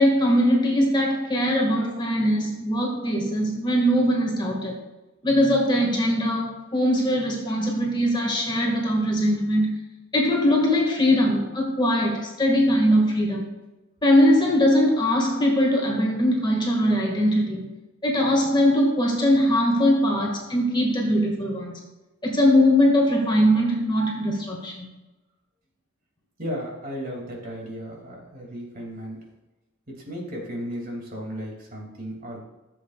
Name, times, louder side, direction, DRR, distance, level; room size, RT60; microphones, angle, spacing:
voice 1, 0.0-4.7 5.2-9.7 10.1-13.5 14.0-17.7 18.0-21.7 22.2-24.9, equal, 20° left, -1 dB, 1.9 m, -21 dB
voice 2, 26.4-29.2 29.9-32.4, equal, 45° right, -2 dB, 2.6 m, -35 dB
14.5 x 7.5 x 2.4 m, 1.1 s
head